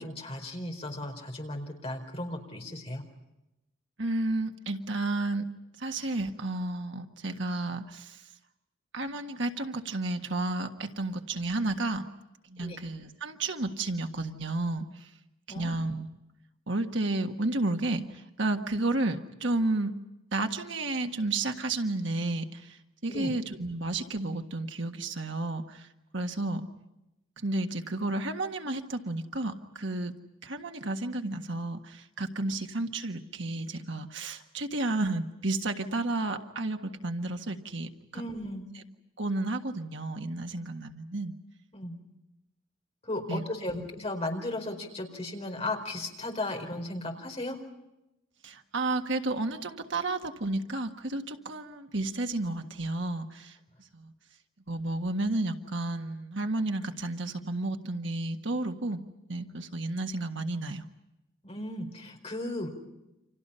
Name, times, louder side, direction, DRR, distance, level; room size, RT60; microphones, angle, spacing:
voice 1, 0.0-3.0 12.6-12.8 15.5-15.8 23.1-23.3 38.1-38.7 41.7-42.0 43.0-47.6 61.4-62.7, left 1 dB, 30° left, 3 dB, 4.6 m, -35 dB
voice 2, 4.0-5.5 5.8-8.3 8.9-12.1 12.5-15.1 15.5-16.1 16.7-20.0 20.3-25.9 26.1-26.7 27.4-30.2 30.4-38.2 38.8-38.9 39.2-41.3 43.3-43.4 43.7-43.9 48.4-53.6 53.9-54.1 54.7-59.0 59.3-60.9, right 2 dB, 65° right, 5 dB, 1.6 m, -32 dB
30.0 x 26.5 x 5.7 m, 0.92 s
head